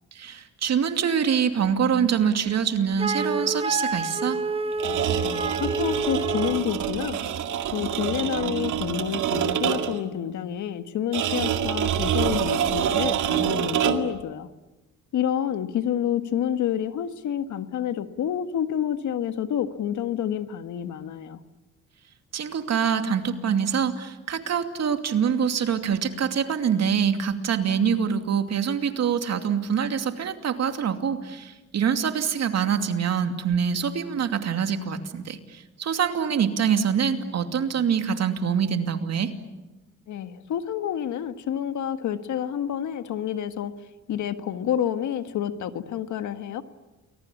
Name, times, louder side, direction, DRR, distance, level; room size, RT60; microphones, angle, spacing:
voice 1, 0.1-4.4 22.3-39.3, right 7 dB, 60° right, 7 dB, 2.7 m, -25 dB
Wind instrument woodwind instrument, 3.0-6.7, right 3 dB, 20° right, 1.1 m, -28 dB
sound 1, 4.7-10.1 11.1-14.2, right 9 dB, 80° right, 2.2 m, -26 dB
voice 2, 5.2-7.2 7.7-14.5 15.1-21.4 40.1-43.7 44.1-46.6, left 9 dB, 75° left, 10 dB, 1.6 m, -28 dB
29.5 x 22.0 x 8.5 m, 1.1 s
cardioid pair, 90°, 30 cm